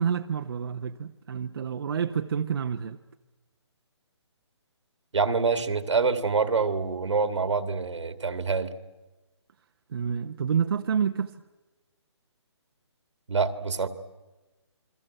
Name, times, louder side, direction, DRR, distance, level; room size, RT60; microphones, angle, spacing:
voice 1, 0.0-3.0 9.9-11.3, right 7 dB, 55° right, 1.0 m, -28 dB
voice 2, 5.1-8.7 13.3-13.9, right 4 dB, 80° right, 2.3 m, -26 dB
28.5 x 23.0 x 7.9 m
hypercardioid pair, 160°, 15 cm